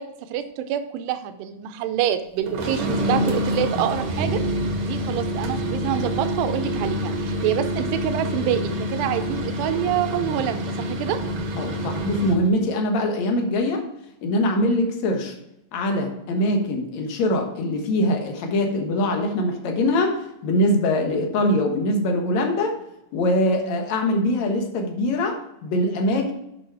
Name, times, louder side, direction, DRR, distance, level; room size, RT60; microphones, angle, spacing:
voice 1, 0.0-4.4 4.8-11.2, right 10 dB, 85° right, 9 dB, 2.9 m, -27 dB
sound 1, 2.5-12.5, equal, 60° right, 1.8 m, -27 dB
voice 2, 11.6-13.8 14.2-15.3 15.7-22.7 23.1-26.3, left 1 dB, 60° left, 3 dB, 2.0 m, -23 dB
8.7 x 6.2 x 4.8 m, 0.84 s
omnidirectional pair, 4.7 m